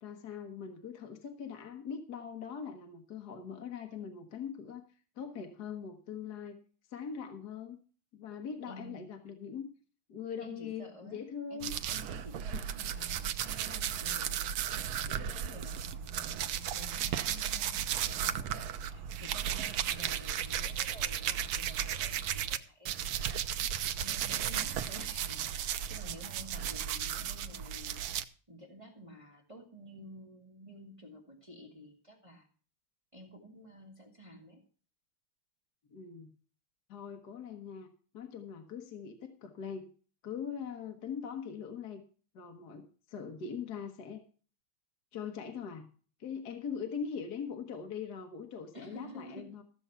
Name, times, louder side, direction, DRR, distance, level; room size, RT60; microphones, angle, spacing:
voice 1, 0.0-4.9 5.2-6.6 6.9-7.8 8.1-9.7 10.1-11.7 12.5-12.6 35.9-36.3 36.9-37.9 38.1-39.9 40.2-42.0 42.3-44.2 45.1-45.9 46.2-49.6, left 7 dB, 55° left, 4 dB, 1.7 m, -41 dB
voice 2, 8.7-9.1 10.4-11.2 11.5-23.6 24.0-28.1 28.5-32.5 33.1-34.6 48.7-49.5, equal, 15° right, 0 dB, 2.2 m, -51 dB
sound 1, 11.6-22.6 22.8-28.2, right 9 dB, 80° right, 1.5 m, -35 dB
14.5 x 7.1 x 5.5 m, 0.40 s
omnidirectional pair, 2.3 m